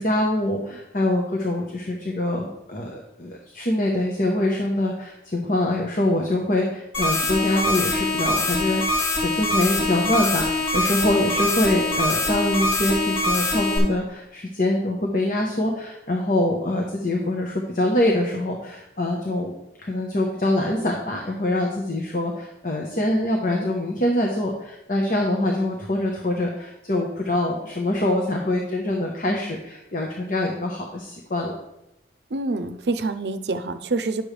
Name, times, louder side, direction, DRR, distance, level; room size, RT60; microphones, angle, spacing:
voice 1, 0.0-19.5 19.8-31.5, left 1 dB, 50° left, 1 dB, 1.1 m, -24 dB
sound 1, 6.9-13.8, left 2 dB, 90° left, 3.5 m, -23 dB
voice 2, 32.3-34.2, right 3 dB, 65° right, 10 dB, 0.6 m, -26 dB
10.5 x 7.0 x 3.3 m, 0.85 s
head